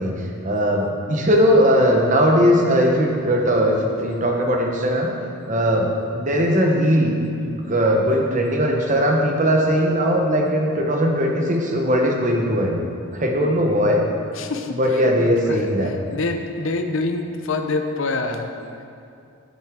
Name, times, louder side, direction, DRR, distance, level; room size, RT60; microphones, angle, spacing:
voice 1, 0.0-5.1 5.5-7.2 7.5-12.8 13.1-14.0 14.7-15.9, equal, 35° right, 1 dB, 1.0 m, -19 dB
voice 2, 14.4-14.8 15.5-15.6 16.1-18.5, left 3 dB, 65° left, 6 dB, 0.7 m, -25 dB
11.0 x 8.0 x 3.6 m, 2.5 s
head